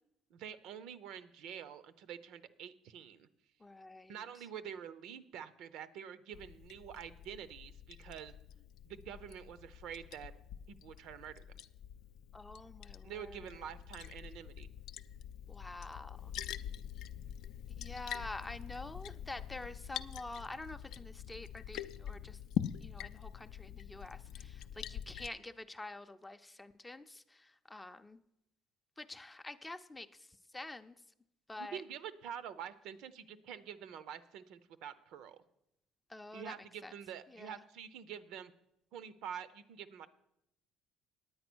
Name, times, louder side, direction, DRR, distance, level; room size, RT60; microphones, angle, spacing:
voice 1, 0.3-3.3 4.1-8.3 8.8-10.3 10.7-11.4 13.0-14.7 31.6-35.4 36.3-38.5 38.9-40.1, right 8 dB, 75° right, 14 dB, 0.7 m, -47 dB
voice 2, 3.6-4.1 12.3-13.1 15.5-16.3 17.8-22.4 22.8-24.2 24.8-27.2 27.7-28.2 29.0-30.1 30.5-30.9 31.5-31.8 36.1-36.5, left 2 dB, 10° left, 9 dB, 0.5 m, -47 dB
Liquid, 6.3-25.3, left 10 dB, 65° left, 0.4 m, -45 dB
9.5 x 9.0 x 6.1 m, 0.81 s
cardioid pair, 120°, 0 cm